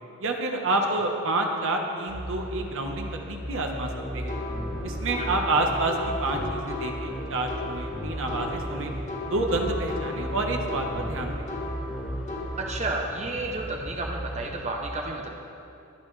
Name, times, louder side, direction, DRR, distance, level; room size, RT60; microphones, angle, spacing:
voice 1, 0.2-4.4 4.8-8.9 9.3-11.5, right 2 dB, 65° right, 2 dB, 1.3 m, -28 dB
sound 1, 2.1-14.5, equal, 5° right, 1.4 m, -37 dB
sound 2, 3.9-12.4, left 2 dB, 35° left, 1.9 m, -35 dB
voice 2, 12.6-15.3, right 2 dB, 30° right, 0 dB, 0.9 m, -31 dB
23.0 x 9.7 x 3.3 m, 2.8 s
head